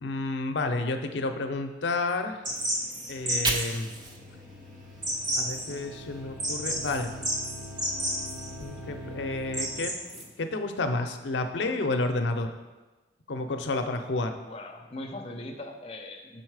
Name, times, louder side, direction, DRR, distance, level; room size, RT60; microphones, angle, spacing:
voice 1, 0.0-2.4 3.1-3.9 5.4-7.1 8.6-12.5 13.3-14.3, left 2 dB, 90° left, 6 dB, 0.6 m, -30 dB
sound 1, 2.4-10.2, right 1 dB, 45° right, 1.1 m, -33 dB
Fire, 3.1-6.2 6.6-8.6, right 2 dB, 25° right, 0.5 m, -38 dB
sound 2, 3.2-10.1, left 1 dB, 85° right, 1.7 m, -44 dB
voice 2, 14.4-16.4, left 1 dB, 35° left, 3 dB, 0.6 m, -40 dB
6.3 x 4.2 x 4.7 m, 1.2 s
head